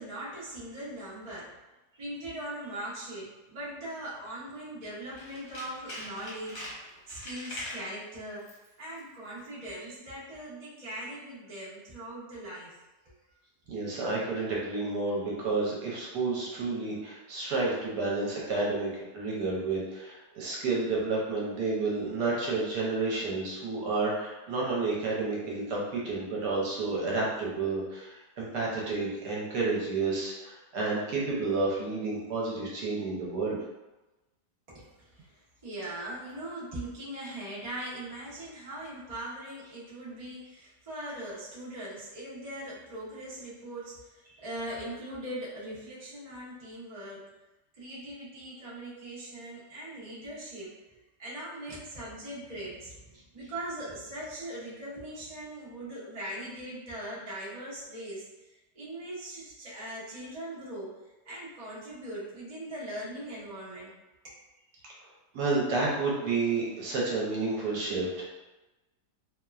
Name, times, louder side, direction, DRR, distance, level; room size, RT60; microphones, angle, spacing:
voice 1, 0.0-1.6 2.0-6.6 7.1-8.4 8.8-12.7 34.7-47.2 47.7-58.3 58.7-60.9 61.2-63.9, right 1 dB, 35° right, -8 dB, 0.6 m, -40 dB
Tools, 5.1-7.9 8.4-8.7 9.0-9.1, left 1 dB, 65° left, 1.2 m, -42 dB
voice 2, 13.7-33.6 65.3-68.3, right 3 dB, 75° right, -4 dB, 1.2 m, -30 dB
2.9 x 2.2 x 2.3 m, 1.1 s
omnidirectional pair, 1.9 m